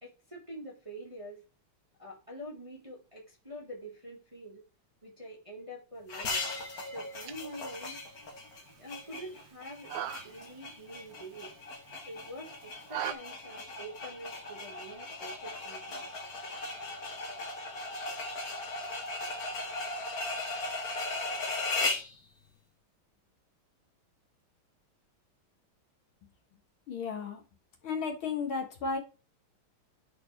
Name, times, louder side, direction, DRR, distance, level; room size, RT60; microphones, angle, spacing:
voice 1, 0.0-1.4 2.0-4.6 5.0-6.5 6.9-8.0 8.8-9.9 10.2-11.5 12.1-16.1, equal, 15° right, 1.6 m, -46 dB
sound 1, 6.1-22.2, left 2 dB, 45° left, 1.7 m, -37 dB
sound 2, 7.0-13.1, right 11 dB, 75° right, 0.9 m, -43 dB
voice 2, 26.9-27.4 27.8-29.0, left 4 dB, 65° left, 2.3 m, -33 dB
11.5 x 4.3 x 3.3 m
omnidirectional pair, 2.4 m